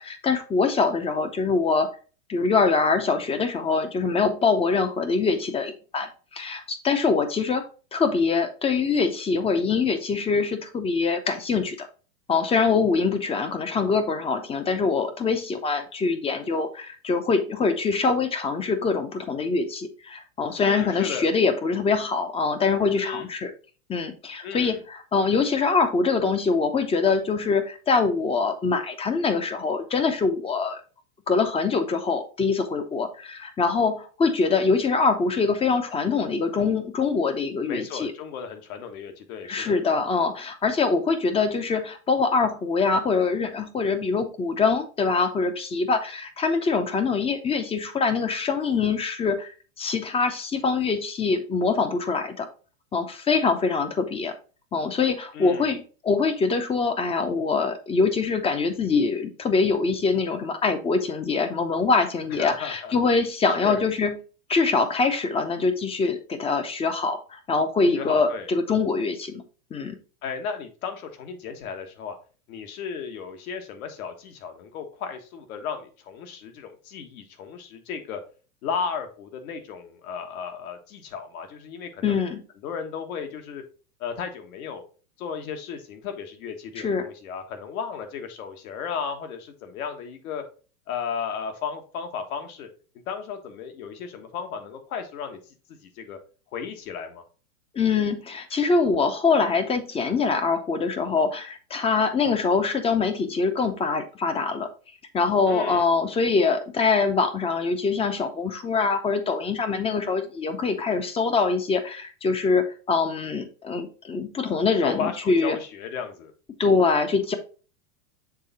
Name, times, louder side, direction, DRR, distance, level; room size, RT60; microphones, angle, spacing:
voice 1, 0.0-1.9 2.3-7.7 7.9-11.9 12.3-23.5 23.9-30.8 31.3-38.1 39.5-52.5 52.9-54.3 54.7-64.2 64.5-69.4 69.7-70.0 82.0-82.4 86.8-87.1 97.7-104.7 105.1-115.6 116.6-117.3, left 4 dB, 15° left, 9 dB, 0.6 m, -24 dB
voice 2, 20.6-21.3 23.0-23.3 24.4-24.8 37.6-39.8 55.3-55.7 62.3-62.9 63.6-63.8 67.9-68.5 70.2-72.2 72.5-78.2 78.6-82.2 82.6-83.6 84.0-84.8 85.2-90.4 90.9-92.7 93.1-95.4 95.8-96.2 96.5-97.2 105.5-105.9 114.8-116.3, left 6 dB, 65° left, 6 dB, 1.5 m, -34 dB
6.8 x 3.5 x 4.0 m, 0.36 s
hypercardioid pair, 125°, 46 cm